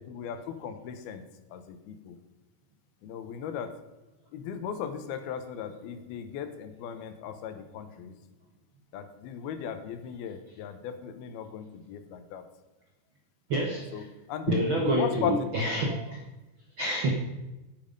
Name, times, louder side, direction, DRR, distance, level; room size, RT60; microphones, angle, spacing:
voice 1, 0.0-2.2 3.0-3.8 4.3-8.2 8.9-12.4 13.6-14.5 14.8-15.5, left 8 dB, 85° left, 9 dB, 2.9 m, -37 dB
voice 2, 13.5-14.0 14.5-16.2 16.8-17.1, right 1 dB, 65° right, -1 dB, 1.2 m, -28 dB
10.5 x 9.2 x 5.2 m, 1.1 s
omnidirectional pair, 4.3 m